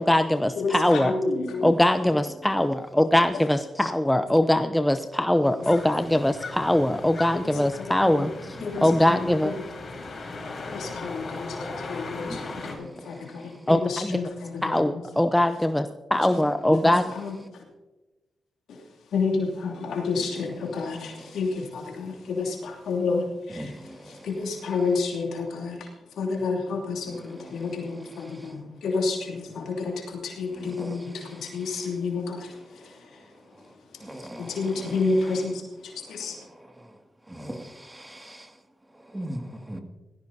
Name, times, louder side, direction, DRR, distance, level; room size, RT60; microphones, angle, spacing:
voice 1, 0.0-1.1 1.6-8.3 8.8-9.5 13.7-13.8 14.1-14.2 14.6-17.0, left 1 dB, 10° left, 9 dB, 0.7 m, -22 dB
voice 2, 0.5-1.8 5.4-5.5 7.3-8.3 8.6-9.6 10.1-10.2 10.7-15.0 16.2-16.4 16.8-17.6 18.7-36.4, left 4 dB, 80° left, -1 dB, 2.9 m, -31 dB
sound 1, 5.6-12.8, left 3 dB, 55° left, 4.6 m, -38 dB
voice 3, 12.2-13.5 23.6-24.3 30.8-31.0 34.0-34.6 37.3-38.5 39.1-39.8, equal, 15° right, 4 dB, 2.3 m, -39 dB
18.0 x 15.0 x 2.8 m, 1.2 s
supercardioid pair, 50°, 0 cm